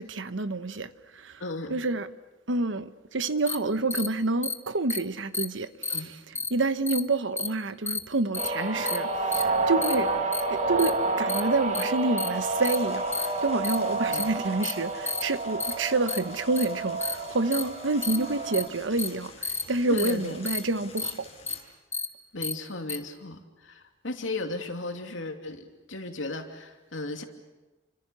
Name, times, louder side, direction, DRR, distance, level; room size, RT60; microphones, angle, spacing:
voice 1, 0.0-1.4 1.7-2.1 2.5-6.1 6.5-10.1 10.5-21.3, right 3 dB, 75° right, 1.1 m, -28 dB
voice 2, 1.4-1.8 5.9-6.4 14.1-14.2 19.9-20.3 22.3-27.2, left 2 dB, 85° left, 2.8 m, -35 dB
sound 1, 3.5-3.6 3.9-4.1 4.4-4.5 4.9-5.0 5.3-5.4 5.8-6.0 6.3-6.5 6.9-7.0 7.4-7.5 7.9-8.0 8.3-8.5 8.9-9.0 9.3-9.4 9.8-9.9 10.3-10.4 10.8-10.9 11.3-11.4 11.7-11.8 12.2-12.3 12.6-12.8 13.1-13.3 13.6-13.8 14.1-14.2 14.6-14.7 15.1-15.2 15.6-15.7 16.1-16.2 16.6-16.7 17.0-17.1 17.5-17.6 18.0-18.2 18.5-18.6 19.0-19.1 19.4-19.6 20.0-20.1 20.5-20.6 21.0-21.1 21.5-21.6 21.9-22.1 22.4-22.5 22.9-23.0, left 4 dB, 15° left, 1.2 m, -30 dB
sound 2, 8.3-18.7, right 3 dB, 40° right, 2.6 m, -29 dB
sound 3, 12.3-21.6, left 4 dB, 35° left, 6.5 m, -49 dB
29.5 x 25.0 x 7.0 m
head